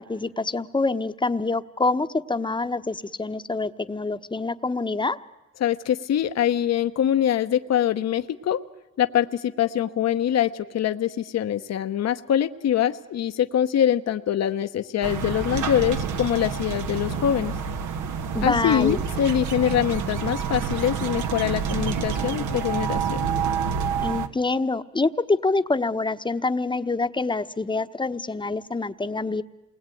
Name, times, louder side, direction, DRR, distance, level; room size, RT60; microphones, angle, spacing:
voice 1, 0.0-5.2 18.3-19.0 24.0-29.4, left 3 dB, 15° left, 10 dB, 1.1 m, -26 dB
voice 2, 5.6-8.6 9.0-17.5 18.4-23.3 24.2-24.3, left 10 dB, 60° left, 9 dB, 1.0 m, -24 dB
sound 1, 15.0-24.3, right 6 dB, 80° right, 1.6 m, -28 dB
28.0 x 21.0 x 9.2 m, 1.1 s
cardioid pair, 90°, 30 cm